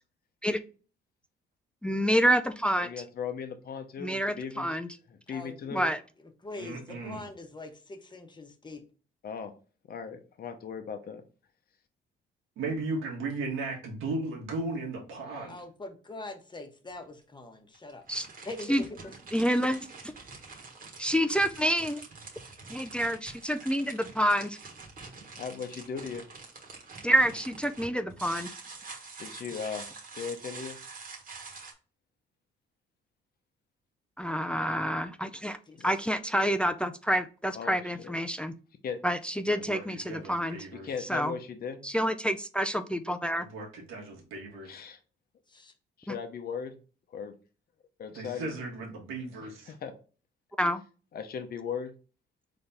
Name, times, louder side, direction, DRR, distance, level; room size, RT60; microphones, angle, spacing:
voice 1, 1.8-2.9 4.0-4.9 5.7-6.0 18.1-18.3 18.7-18.8 19.3-19.8 21.0-22.0 22.7-24.6 27.0-28.5 34.2-35.6 35.8-38.5 39.0-40.6 41.1-41.3 41.8-43.5 50.6-50.8, equal, 5° left, 10 dB, 0.4 m, -28 dB
voice 2, 2.8-4.8 5.1-5.8 9.2-9.5 9.9-11.2 15.3-15.4 25.4-26.3 29.2-29.8 30.1-30.8 35.7-35.9 37.5-38.4 38.8-39.0 40.7-41.9 44.7-45.0 46.0-46.8 47.1-47.3 48.0-48.5 49.7-49.9 51.1-51.9, left 6 dB, 50° left, 6 dB, 0.8 m, -38 dB
voice 3, 5.3-5.9 6.4-8.8 15.5-18.0 18.4-18.9 35.7-35.9 45.5-45.7, left 2 dB, 20° left, 5 dB, 1.0 m, -43 dB
voice 4, 6.6-7.2 12.6-15.6 39.5-40.9 43.4-44.8 48.1-49.7, right 3 dB, 90° right, -1 dB, 1.5 m, -36 dB
sound 1, 16.9-17.0 17.7-31.7, right 4 dB, 45° right, 1.4 m, -46 dB
4.1 x 3.4 x 3.4 m, 0.36 s
cardioid pair, 90°, 20 cm